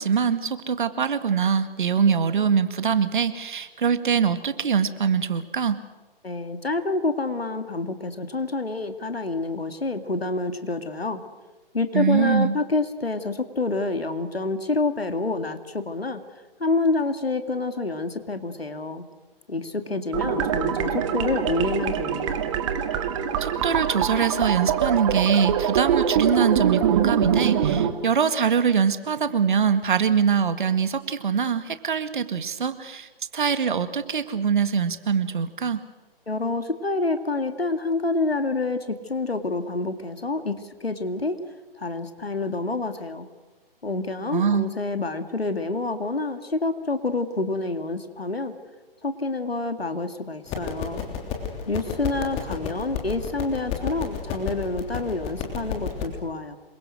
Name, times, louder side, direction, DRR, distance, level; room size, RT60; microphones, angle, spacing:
voice 1, 0.0-5.8 11.9-12.5 23.4-35.8 44.3-44.7, right 6 dB, 55° right, 11 dB, 1.9 m, -23 dB
voice 2, 6.2-11.2 11.7-16.2 16.6-19.0 19.5-22.4 36.3-41.4 41.8-43.3 43.8-48.6 49.0-51.0 51.7-56.6, left 3 dB, 80° left, 8 dB, 2.5 m, -27 dB
sound 1, 20.1-27.9, right 8 dB, 30° right, 2.0 m, -24 dB
sound 2, 50.5-56.0, left 7 dB, 20° left, 3.2 m, -32 dB
27.0 x 23.0 x 6.5 m, 1.2 s
figure-of-eight pair, 135°, 30 cm